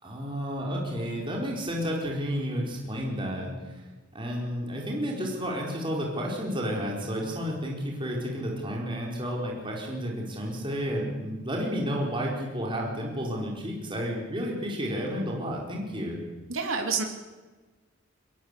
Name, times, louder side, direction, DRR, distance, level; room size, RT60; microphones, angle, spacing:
voice 1, 0.0-16.2, equal, 25° right, -2 dB, 4.6 m, -31 dB
voice 2, 16.5-17.0, right 5 dB, 75° right, 3 dB, 2.9 m, -28 dB
23.0 x 20.5 x 8.5 m, 1.3 s
head